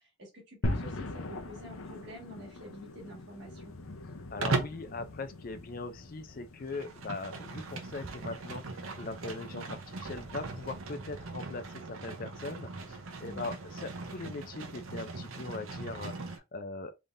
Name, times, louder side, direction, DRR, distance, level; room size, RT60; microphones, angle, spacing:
voice 1, 0.2-3.8 13.2-13.6, equal, 55° right, 1.9 m, -48 dB
sound 1, 0.6-10.9, left 2 dB, 80° left, 0.7 m, -42 dB
voice 2, 4.3-17.0, left 3 dB, 45° left, 0.5 m, -40 dB
Livestock farm animals working animals, 4.4-4.9 6.6-16.4, right 3 dB, 85° right, 0.8 m, -39 dB
3.6 x 3.6 x 2.6 m
head